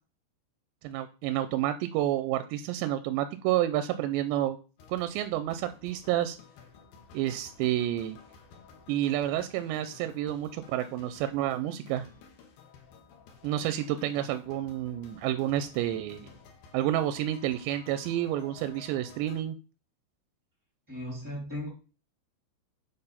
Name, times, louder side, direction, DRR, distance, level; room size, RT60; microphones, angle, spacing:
voice 1, 0.8-4.6 4.9-6.4 7.1-8.2 8.9-12.1 13.4-16.2 16.7-19.6, right 13 dB, 80° right, 11 dB, 2.6 m, -29 dB
sound 1, 4.8-19.4, left 5 dB, 65° left, 2.6 m, -54 dB
voice 2, 20.9-21.7, left 1 dB, 10° right, -2 dB, 0.8 m, -36 dB
8.8 x 4.1 x 5.7 m, 0.34 s
omnidirectional pair, 5.4 m